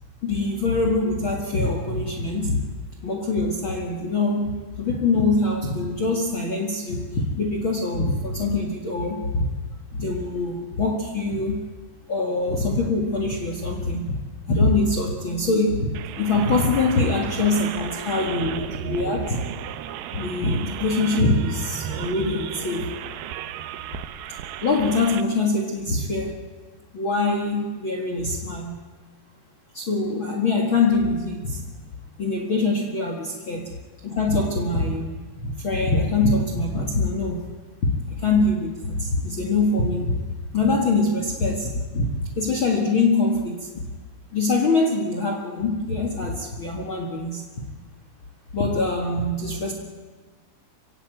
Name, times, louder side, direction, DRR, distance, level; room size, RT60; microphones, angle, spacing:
voice 1, 0.2-2.6 3.0-9.4 9.9-11.6 12.1-14.2 14.5-15.9 16.2-19.4 20.1-22.9 24.6-26.3 26.9-28.8 29.7-31.6 32.2-33.8 34.0-35.1 35.4-37.5 37.8-40.2 40.5-43.9 44.3-47.4 48.5-49.7, left 3 dB, 45° left, 3 dB, 1.7 m, -23 dB
sound 1, 15.9-25.2, right 11 dB, 75° right, 2.3 m, -34 dB
25.0 x 16.0 x 9.1 m, 1.3 s
omnidirectional pair, 5.1 m